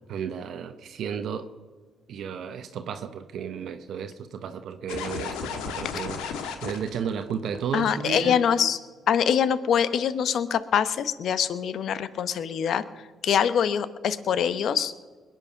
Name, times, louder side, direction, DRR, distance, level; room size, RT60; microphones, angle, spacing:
voice 1, 0.1-1.5 2.1-8.4, right 7 dB, 70° right, 8 dB, 0.8 m, -33 dB
sound 1, 4.9-8.0, left 6 dB, 90° left, 1.3 m, -34 dB
voice 2, 7.7-8.8 9.1-12.8 13.2-14.9, left 8 dB, 70° left, 14 dB, 0.9 m, -24 dB
21.5 x 9.0 x 5.9 m, 1.5 s
supercardioid pair, 60°, 0 cm